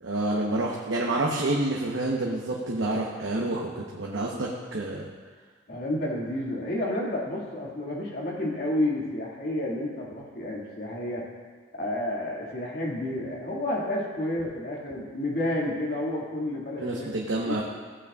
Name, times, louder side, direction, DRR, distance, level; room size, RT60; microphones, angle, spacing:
voice 1, 0.0-5.1 16.8-17.6, right 2 dB, 70° right, -2 dB, 1.0 m, -28 dB
voice 2, 5.7-11.2 11.7-17.1 17.4-17.6, left 1 dB, 50° left, -4 dB, 2.1 m, -30 dB
15.0 x 8.4 x 2.4 m, 1.5 s
head